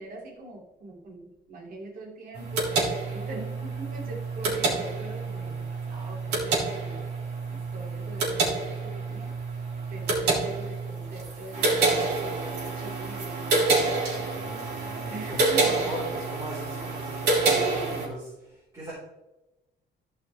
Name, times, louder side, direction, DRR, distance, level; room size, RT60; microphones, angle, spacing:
voice 1, 0.0-7.1 7.5-9.4 9.9-13.7 15.1-15.9 17.0-18.0, right 2 dB, 60° right, 0 dB, 2.5 m, -42 dB
sound 1, 2.3-18.1, right 3 dB, 85° right, 3.6 m, -28 dB
voice 2, 13.9-18.9, equal, 20° right, -8 dB, 3.6 m, -39 dB
15.0 x 5.8 x 3.2 m, 0.97 s
cardioid pair, 145°, 17 cm